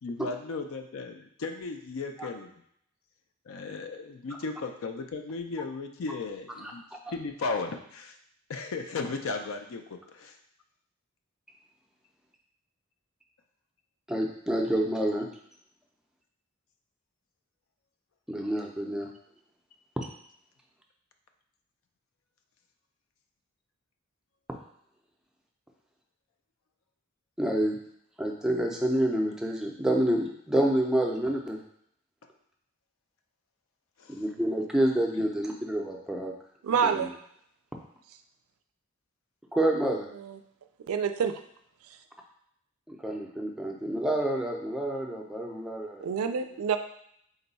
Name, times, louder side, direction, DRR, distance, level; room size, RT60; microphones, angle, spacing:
voice 1, 0.0-2.5 3.5-6.8 7.1-8.2 8.5-10.4 34.0-34.2, left 4 dB, 65° left, 6 dB, 0.4 m, -35 dB
voice 2, 14.1-15.3 18.3-19.1 20.0-20.1 27.4-27.8 28.2-31.6 34.1-36.3 36.8-37.1 39.5-40.1 42.9-46.1, right 1 dB, 5° right, 0 dB, 0.4 m, -28 dB
voice 3, 36.6-37.1 40.2-40.4 40.9-41.4 41.8-42.0 46.0-46.8, right 6 dB, 85° right, 8 dB, 0.4 m, -27 dB
3.9 x 2.3 x 4.0 m, 0.70 s
head